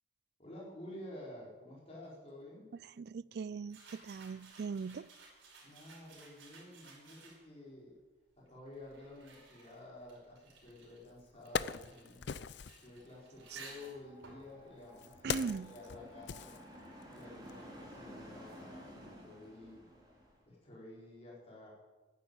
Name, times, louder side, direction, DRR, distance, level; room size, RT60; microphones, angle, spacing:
voice 1, 0.4-2.7 5.6-7.9 8.4-12.2 12.8-16.5 17.1-19.9 20.5-21.7, left 1 dB, 30° left, 4.4 m, -51 dB
voice 2, 2.7-5.1 13.5-13.6 15.2-15.7, right 5 dB, 55° right, 0.3 m, -40 dB
sound 1, 3.7-7.7 8.4-15.9, right 3 dB, 85° right, 5.1 m, -57 dB
Wood, 10.7-10.8 11.2-12.9 13.8-17.2 17.5-17.6, left 6 dB, 60° left, 0.5 m, -41 dB
sound 2, 13.0-20.4, equal, 20° right, 4.0 m, -54 dB
11.5 x 10.0 x 8.8 m
head